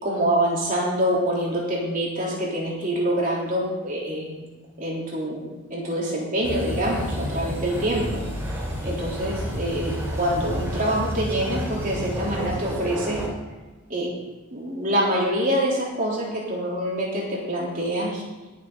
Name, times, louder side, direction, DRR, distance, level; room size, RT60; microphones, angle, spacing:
voice 1, 0.0-4.5 4.8-8.3 8.8-13.2 13.9-14.1 14.5-18.2, right 1 dB, 40° right, -4 dB, 3.4 m, -25 dB
sound 1, 6.4-13.3, equal, 10° right, 2.7 m, -30 dB
21.0 x 7.2 x 3.9 m, 1.2 s
head